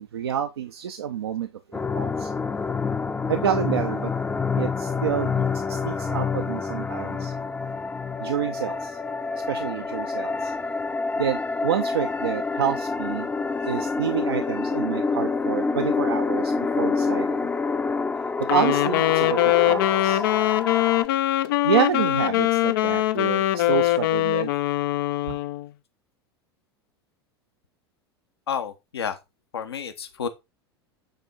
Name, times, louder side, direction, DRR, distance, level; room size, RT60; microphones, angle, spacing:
voice 1, 0.0-2.3 3.3-4.1 4.6-7.3 8.2-9.0 9.5-10.5 11.2-13.3 13.6-17.5 18.4-20.2 21.6-24.5 25.3-25.4, right 9 dB, 70° right, 0.7 m, -28 dB
sound 1, 1.7-21.1, left 4 dB, 10° left, 0.7 m, -27 dB
Wind instrument woodwind instrument, 18.4-25.7, left 15 dB, 55° left, 0.6 m, -22 dB
voice 2, 28.5-29.2 29.5-30.3, left 7 dB, 70° left, 1.1 m, -30 dB
9.2 x 4.4 x 3.9 m
figure-of-eight pair, 80°, 14 cm